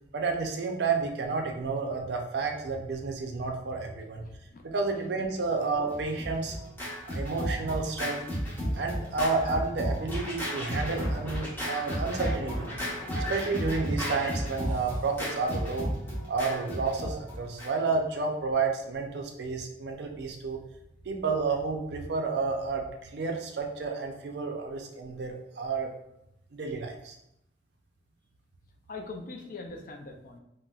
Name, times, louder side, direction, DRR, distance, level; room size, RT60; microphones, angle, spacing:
voice 1, 0.1-4.2 4.7-6.6 7.1-8.2 8.7-12.7 13.3-15.9 16.3-20.6 21.0-25.9 26.5-27.2, right 4 dB, 60° right, 3 dB, 0.4 m, -31 dB
voice 2, 4.2-4.6 5.4-5.5 28.9-30.4, left 3 dB, 45° left, 3 dB, 0.3 m, -42 dB
Scratching (performance technique), 5.9-18.0, equal, 10° left, 0.7 m, -33 dB
3.9 x 2.0 x 2.3 m, 0.82 s
head